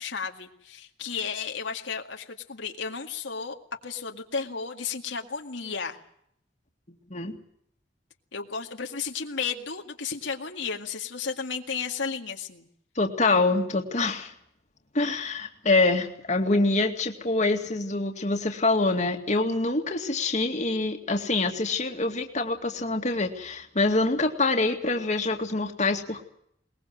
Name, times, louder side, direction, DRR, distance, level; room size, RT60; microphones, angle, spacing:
voice 1, 0.0-3.6 3.8-6.0 8.3-12.7, left 5 dB, 80° left, 3 dB, 2.1 m, -33 dB
voice 2, 13.0-14.3 14.9-26.2, left 2 dB, 40° left, 4 dB, 2.3 m, -25 dB
22.0 x 20.5 x 7.8 m, 0.71 s
head